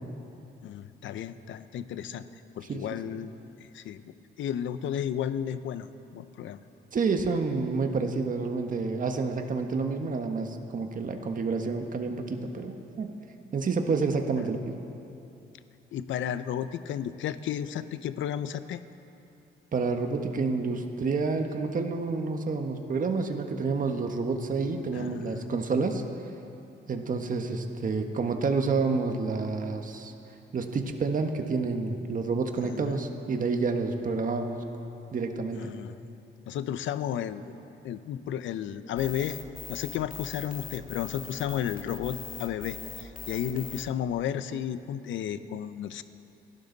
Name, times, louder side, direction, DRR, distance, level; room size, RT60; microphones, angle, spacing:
voice 1, 0.6-2.3 2.6-3.3 3.6-6.6 14.4-14.5 15.9-18.8 24.9-25.4 32.6-33.0 35.6-36.0 36.5-37.6 37.8-39.4 39.7-46.0, left 9 dB, 75° left, 12 dB, 0.8 m, -33 dB
voice 2, 6.9-13.1 13.5-14.8 19.7-26.0 26.9-30.1 30.5-34.6 35.1-35.7, right 4 dB, 45° right, 5 dB, 1.5 m, -29 dB
sound 1, 39.0-43.8, left 5 dB, 45° left, 2.1 m, -41 dB
28.5 x 12.0 x 4.1 m, 2.8 s
cardioid pair, 90°, 20 cm